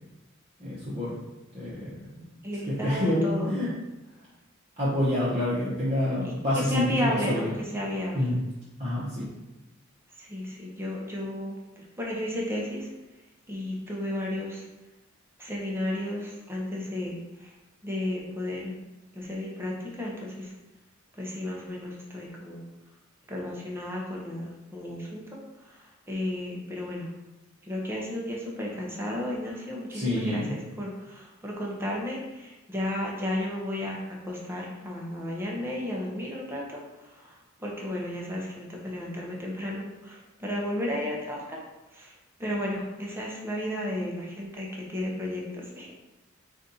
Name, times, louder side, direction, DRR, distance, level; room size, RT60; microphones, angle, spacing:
voice 1, 0.6-1.2 1.5-2.0 2.8-3.7 4.8-7.5 8.1-8.4 8.8-9.3 29.9-30.5, left 1 dB, 30° right, -9 dB, 0.9 m, -27 dB
voice 2, 2.4-3.6 6.2-8.3 10.2-12.9 13.5-14.7 15.4-17.5 17.8-18.8 19.1-20.5 21.2-22.6 23.3-27.1 27.6-34.0 34.3-41.6 41.9-42.1 42.4-45.9, left 1 dB, 10° right, -3 dB, 0.8 m, -33 dB
4.1 x 2.6 x 3.9 m, 1.1 s
head